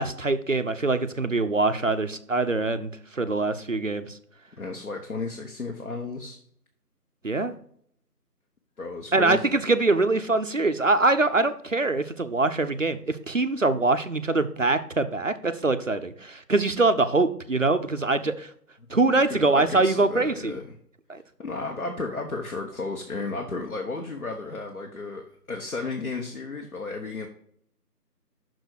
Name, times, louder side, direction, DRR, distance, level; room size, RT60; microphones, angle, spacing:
voice 1, 0.0-4.2 7.2-7.5 9.1-18.5 18.9-20.5 21.1-21.2, right 3 dB, 55° right, 10 dB, 0.5 m, -23 dB
voice 2, 4.6-6.4 8.8-9.6 19.1-20.7 21.4-27.3, left 3 dB, 60° left, 2 dB, 1.2 m, -33 dB
6.3 x 4.1 x 6.3 m, 0.64 s
figure-of-eight pair, 170°, 49 cm